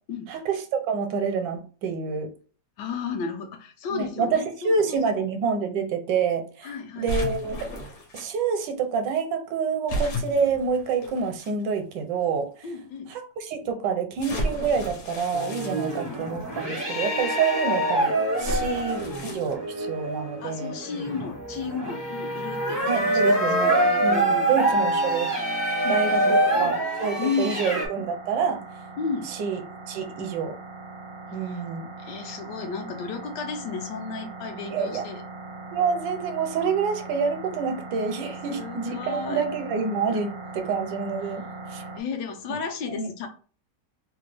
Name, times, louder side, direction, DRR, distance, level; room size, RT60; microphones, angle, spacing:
voice 1, 0.3-2.3 3.9-7.7 8.1-12.5 13.1-20.7 22.9-23.8 24.0-25.3 25.9-28.6 29.3-29.6 29.9-30.6 31.3-31.9 34.7-35.0 35.7-41.5 41.7-41.8 42.5-42.6 42.9-43.1, right 5 dB, 80° right, 6 dB, 1.2 m, -27 dB
voice 2, 2.8-5.2 6.6-7.1 10.3-10.4 12.6-13.1 15.7-15.9 18.4-18.8 20.4-24.9 25.8-26.8 27.2-27.6 29.0-29.3 31.4-31.6 32.0-35.2 38.5-39.5 41.7-43.3, left 5 dB, 75° left, 5 dB, 1.2 m, -34 dB
sound 1, 7.1-8.2 9.9-11.5 12.3-12.4 14.2-16.5 18.4-19.5, equal, 55° left, 1.0 m, -33 dB
sound 2, 15.3-27.9, right 1 dB, 35° left, 0.3 m, -25 dB
sound 3, 22.8-42.0, right 3 dB, 60° right, 0.6 m, -41 dB
3.2 x 2.2 x 3.3 m, 0.39 s
omnidirectional pair, 1.9 m